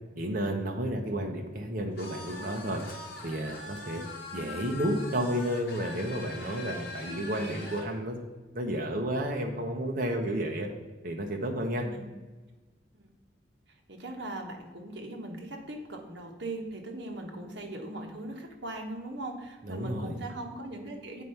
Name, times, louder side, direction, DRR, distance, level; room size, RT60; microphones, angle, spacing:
voice 1, 0.2-2.8 3.2-4.0 4.3-8.2 8.5-10.7 11.0-11.8 19.6-20.1, right 1 dB, 50° right, 2 dB, 0.9 m, -31 dB
sound 1, 2.0-7.9, left 3 dB, 55° left, 2.3 m, -42 dB
voice 2, 11.5-12.0 12.9-13.1 13.9-21.2, right 2 dB, 65° right, 2 dB, 1.3 m, -40 dB
8.2 x 4.6 x 5.5 m, 1.3 s
head